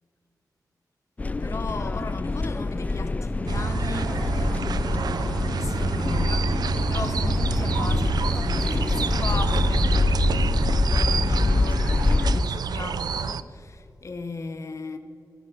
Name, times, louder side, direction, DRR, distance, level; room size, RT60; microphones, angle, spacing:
sound 1, 1.2-12.4, left 3 dB, 20° left, 0.3 m, -25 dB
voice 1, 1.4-15.0, left 3 dB, 45° left, 0.7 m, -36 dB
sound 2, 3.5-13.4, right 6 dB, 80° right, 0.4 m, -28 dB
17.0 x 11.0 x 5.8 m
wide cardioid pair, 180°, 7 cm